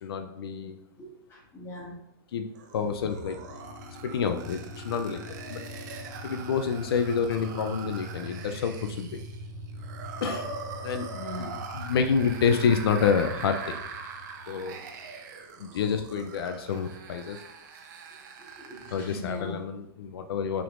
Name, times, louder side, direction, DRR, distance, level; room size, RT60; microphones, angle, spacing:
voice 1, 0.0-0.8 2.3-3.4 4.0-5.6 6.2-9.2 10.2-11.1 11.4-13.9 14.5-14.8 15.6-17.4 18.9-20.6, left 6 dB, 85° left, 7 dB, 0.5 m, -28 dB
voice 2, 1.0-1.9 11.1-11.5 18.6-19.6, left 2 dB, 20° left, -5 dB, 1.8 m, -40 dB
sound 1, 2.5-19.2, right 5 dB, 50° right, 0.7 m, -42 dB
sound 2, 2.9-15.1, left 1 dB, 15° right, 1.7 m, -43 dB
5.8 x 3.6 x 2.5 m, 0.78 s
hypercardioid pair, 155°, 12 cm